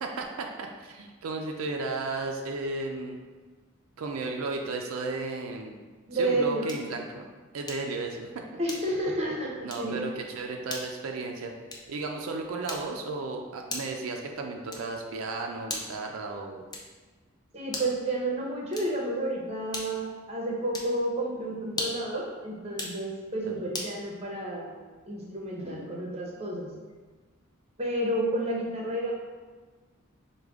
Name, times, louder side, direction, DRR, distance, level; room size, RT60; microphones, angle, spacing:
voice 1, 0.0-3.2 4.0-5.8 6.1-7.2 7.5-8.4 9.6-11.5 11.9-16.6 23.4-23.6, right 3 dB, 85° right, 2 dB, 0.4 m, -34 dB
voice 2, 6.1-6.8 8.6-10.0 17.5-24.7 25.1-26.7 27.8-29.1, right 1 dB, 30° right, -2 dB, 0.7 m, -30 dB
sound 1, 6.6-7.0 7.7-8.0 8.6-9.1 9.6-9.9 10.7-11.0 11.7-12.0 12.7-13.1 13.7-14.1 14.7-15.0 15.7-16.1 16.7-17.1 17.7-18.0 18.7-19.1 19.7-20.1 20.7-21.0 21.7-22.1 22.7-23.0 23.7-24.0, left 2 dB, 20° left, 0.4 m, -38 dB
4.9 x 2.2 x 3.5 m, 1.4 s
head